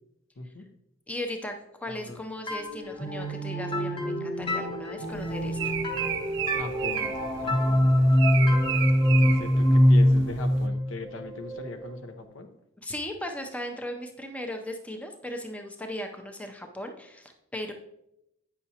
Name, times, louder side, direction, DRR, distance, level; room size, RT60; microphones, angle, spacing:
voice 1, 0.4-0.7 1.9-2.2 6.5-8.0 9.1-12.5, left 2 dB, 75° left, 7 dB, 0.7 m, -39 dB
voice 2, 1.1-5.7 12.8-17.7, left 1 dB, 5° left, 4 dB, 0.5 m, -37 dB
sound 1, 2.5-12.0, equal, 25° left, 0.8 m, -24 dB
sound 2, 5.0-10.7, right 9 dB, 60° right, 0.5 m, -34 dB
8.3 x 5.7 x 2.8 m, 0.83 s
head